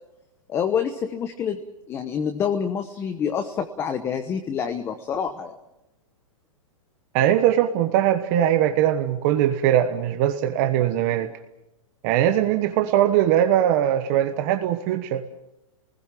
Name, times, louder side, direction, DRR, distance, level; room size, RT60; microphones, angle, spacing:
voice 1, 0.5-1.6 1.9-5.6, left 7 dB, 15° left, 9 dB, 1.0 m, -27 dB
voice 2, 7.1-11.3 12.0-15.2, right 11 dB, 30° right, 8 dB, 1.2 m, -21 dB
28.0 x 20.0 x 7.6 m, 0.92 s
hypercardioid pair, 160°, 18 cm